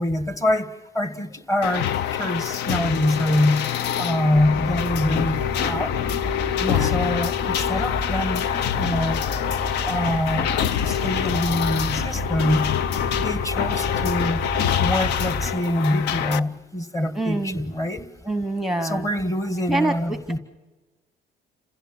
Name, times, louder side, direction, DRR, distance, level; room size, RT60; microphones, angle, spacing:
voice 1, 0.0-3.7 4.0-5.9 6.8-9.2 9.8-10.5 10.8-12.7 13.2-14.4 14.8-18.1 18.8-20.4, left 1 dB, 20° left, 12 dB, 1.7 m, -25 dB
sound 1, 1.6-16.4, left 10 dB, 80° left, 0.7 m, -26 dB
sound 2, 4.3-15.5, equal, 40° left, 1.9 m, -31 dB
voice 2, 6.6-7.1 17.1-17.6 18.2-19.1 19.7-20.4, right 2 dB, ahead, 10 dB, 1.1 m, -26 dB
28.5 x 16.0 x 7.2 m, 1.2 s
cardioid pair, 110°, 17 cm